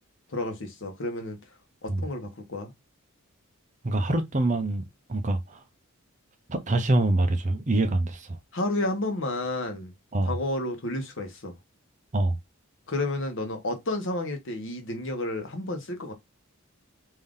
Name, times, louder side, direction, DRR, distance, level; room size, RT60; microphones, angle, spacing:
voice 1, 0.3-1.4 1.8-2.7 8.5-9.9 10.2-11.5 12.9-16.1, left 2 dB, 60° left, 1.0 m, -31 dB
voice 2, 3.8-4.8 5.1-5.6 6.5-8.4 10.1-10.3 12.1-12.4, right 2 dB, 35° right, 0.6 m, -25 dB
3.7 x 2.7 x 3.5 m
head